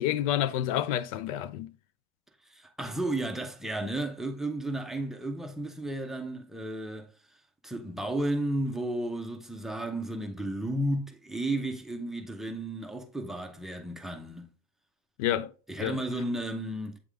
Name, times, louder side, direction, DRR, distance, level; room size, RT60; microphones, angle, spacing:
voice 1, 0.0-1.7 15.2-15.5 15.8-16.0, left 12 dB, 85° left, 0.5 m, -28 dB
voice 2, 2.5-7.1 7.6-14.5 15.7-17.0, right 1 dB, ahead, 0.7 m, -33 dB
8.2 x 3.5 x 3.4 m
cardioid pair, 155°, 18 cm